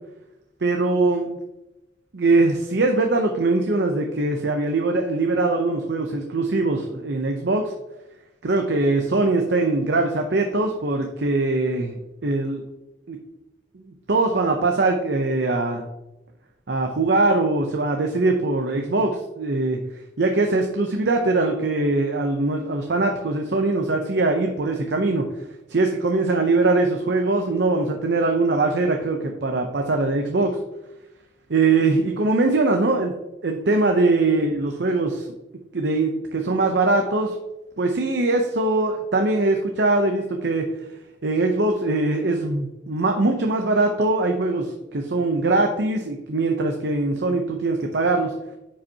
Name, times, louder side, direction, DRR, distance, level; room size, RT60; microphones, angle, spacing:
voice 1, 0.6-1.4 2.1-7.7 8.4-12.6 13.1-13.2 13.7-15.9 16.7-19.8 20.2-25.3 25.7-30.6 31.5-33.1 33.4-35.3 35.7-37.4 37.8-40.7 41.2-48.3, right 2 dB, 60° right, 3 dB, 0.7 m, -22 dB
9.8 x 5.3 x 2.8 m, 0.95 s
head